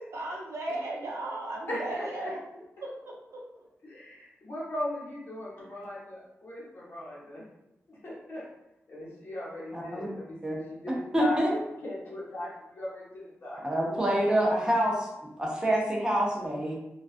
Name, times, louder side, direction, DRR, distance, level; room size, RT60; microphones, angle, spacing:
voice 1, 0.1-2.4 2.8-3.7, right 2 dB, 80° right, -1 dB, 0.5 m, -36 dB
voice 2, 1.7-2.3 3.8-7.4 7.9-8.4 8.9-14.7, left 1 dB, 55° left, -7 dB, 0.9 m, -38 dB
voice 3, 9.7-10.1 10.4-10.6 11.1-11.5 13.6-15.1 15.4-16.8, right 1 dB, 15° right, -3 dB, 0.5 m, -26 dB
2.3 x 2.2 x 2.4 m, 0.87 s
wide cardioid pair, 160°, 5 cm